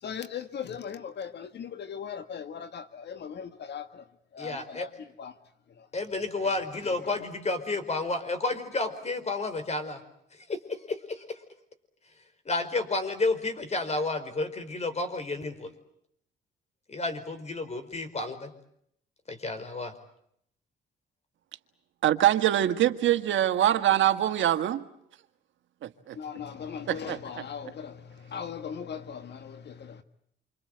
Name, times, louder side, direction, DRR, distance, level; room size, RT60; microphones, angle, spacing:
voice 1, 0.0-5.4 5.7-5.9 6.8-7.2 26.1-30.0, left 7 dB, 60° left, 1.7 m, -39 dB
voice 2, 4.4-4.9 5.9-10.0 10.5-11.4 12.4-15.7 16.9-18.5 19.3-19.9, left 3 dB, 35° left, 4.8 m, -31 dB
voice 3, 22.0-24.8 25.8-26.2 26.9-27.2, right 12 dB, 75° right, 1.7 m, -24 dB
28.0 x 26.0 x 7.9 m
cardioid pair, 90°, 20 cm